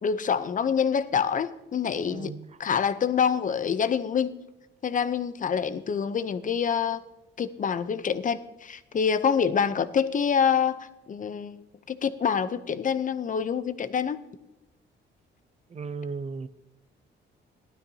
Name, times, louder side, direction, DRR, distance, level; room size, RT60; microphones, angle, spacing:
voice 1, 0.0-2.3 2.6-4.3 4.8-7.0 7.4-11.6 11.9-14.2, left 7 dB, 40° left, 13 dB, 0.7 m, -26 dB
voice 2, 2.1-2.5 15.7-16.5, right 4 dB, 35° right, 15 dB, 0.6 m, -35 dB
15.5 x 12.5 x 2.8 m, 0.97 s
cardioid pair, 90°, 20 cm